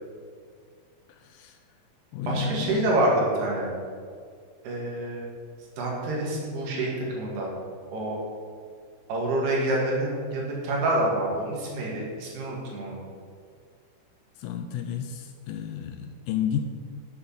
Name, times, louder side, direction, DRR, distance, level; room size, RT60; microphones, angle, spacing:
voice 1, 1.1-1.6 2.1-2.9 14.4-16.6, left 8 dB, 80° left, 6 dB, 2.1 m, -32 dB
voice 2, 2.3-3.7 4.6-5.3 5.8-7.5 7.9-8.2 9.1-13.0, right 1 dB, 85° right, -2 dB, 4.0 m, -27 dB
7.7 x 6.8 x 7.1 m, 2.1 s
omnidirectional pair, 4.5 m